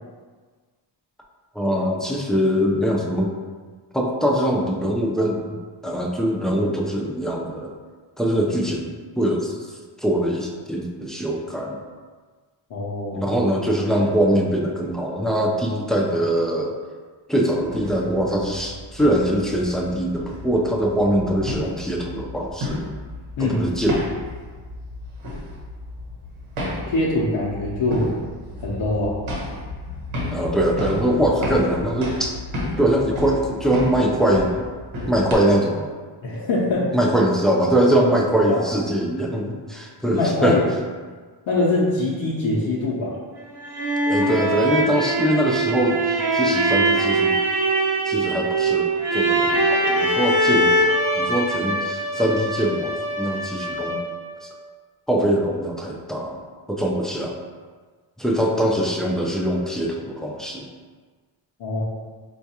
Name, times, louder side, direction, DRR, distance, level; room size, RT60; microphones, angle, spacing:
voice 1, 1.5-3.3 3.9-5.6 5.8-7.7 8.2-11.8 13.1-16.7 17.3-22.8 23.4-24.0 30.3-32.3 32.8-34.5 35.1-35.9 36.9-40.6 44.1-47.4 48.1-50.7 51.2-54.0 54.4-54.5 55.1-56.4 56.7-57.4 58.2-60.6, right 1 dB, ahead, -1 dB, 0.4 m, -22 dB
voice 2, 12.7-13.3 23.4-23.6 26.9-28.1 28.6-29.1 36.2-37.0 38.5-38.6 40.1-40.6 41.5-43.2 61.6-61.8, left 2 dB, 80° left, -6 dB, 0.7 m, -23 dB
sound 1, 17.6-35.3, left 1 dB, 85° right, 0.9 m, -33 dB
sound 2, 43.4-54.2, right 2 dB, 35° right, 0.9 m, -22 dB
4.4 x 2.3 x 2.7 m, 1.5 s
cardioid pair, 80°, 47 cm